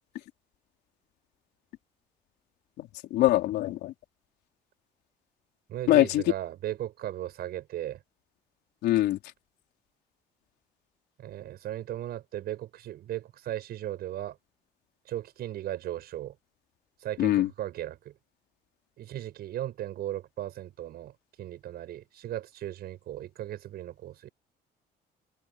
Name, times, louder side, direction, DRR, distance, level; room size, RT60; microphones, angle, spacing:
voice 1, 2.8-3.9 5.9-6.2 8.8-9.2 17.2-17.5, left 15 dB, 80° left, 4.5 m, -23 dB
voice 2, 5.7-8.0 11.2-14.4 15.1-16.4 17.0-18.1 19.0-24.3, right 12 dB, 70° right, 7.1 m, -37 dB
cardioid pair, 110°, 17 cm